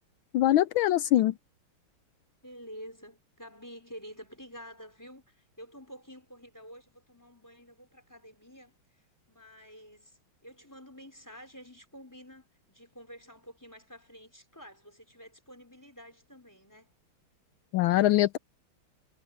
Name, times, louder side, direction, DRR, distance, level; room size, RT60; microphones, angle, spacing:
voice 1, 0.3-1.3 17.7-18.4, left 14 dB, 75° left, 1.3 m, -23 dB
voice 2, 2.4-17.0, equal, 10° left, 4.6 m, -49 dB
omnidirectional pair, 2.3 m